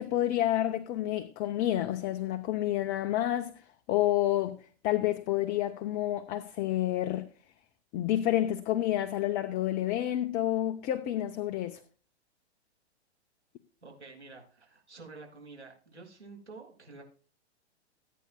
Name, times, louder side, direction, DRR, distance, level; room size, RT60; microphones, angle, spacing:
voice 1, 0.0-3.5 3.9-4.6 4.8-7.3 7.9-11.8, left 13 dB, 25° left, 0.8 m, -29 dB
voice 2, 13.8-17.0, right 3 dB, 85° right, 6.0 m, -49 dB
21.0 x 9.5 x 2.2 m
figure-of-eight pair, 115°, 34 cm